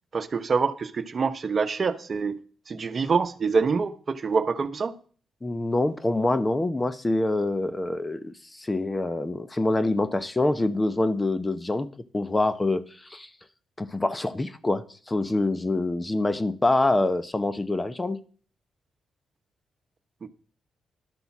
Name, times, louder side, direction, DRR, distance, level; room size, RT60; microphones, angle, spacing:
voice 1, 0.1-2.4 2.7-4.9 20.2-20.3, right 5 dB, 45° right, 1.0 m, -26 dB
voice 2, 5.4-11.9 12.1-12.8 13.1-13.3 13.8-18.2, left 2 dB, 20° left, 0.8 m, -25 dB
11.5 x 7.9 x 6.0 m
cardioid pair, 75°, 0 cm